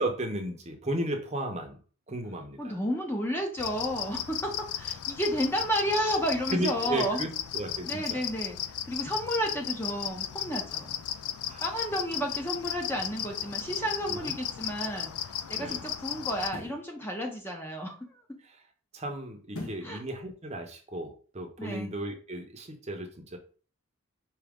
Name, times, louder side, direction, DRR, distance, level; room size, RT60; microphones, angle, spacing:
voice 1, 0.0-1.8 2.1-2.8 6.5-8.2 11.5-11.7 14.1-14.3 15.5-15.8 18.4-18.6 18.9-23.4, right 1 dB, 30° right, 4 dB, 0.7 m, -34 dB
voice 2, 2.6-7.3 7.8-8.6 8.9-11.0 11.6-18.4 19.8-20.0 21.6-21.9, equal, 10° left, 2 dB, 0.6 m, -32 dB
sound 1, 3.6-16.5, left 10 dB, 85° left, 0.4 m, -36 dB
sound 2, 16.4-16.9 19.5-20.0 20.4-20.5, left 2 dB, 70° left, 1.0 m, -40 dB
4.9 x 2.8 x 3.5 m, 0.39 s
head